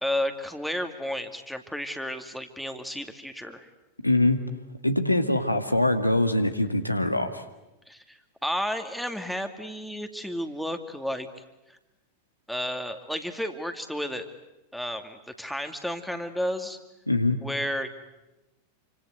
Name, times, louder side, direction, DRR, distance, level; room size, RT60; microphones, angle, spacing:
voice 1, 0.0-3.7 7.9-11.3 11.7-11.8 12.5-14.3 14.7-16.8 17.4-17.9, equal, ahead, 6 dB, 2.4 m, -32 dB
voice 2, 4.0-4.4 4.8-7.4 17.1-17.4, left 2 dB, 85° left, 6 dB, 2.1 m, -23 dB
29.0 x 25.5 x 8.0 m, 0.98 s
figure-of-eight pair, 90°, 0 cm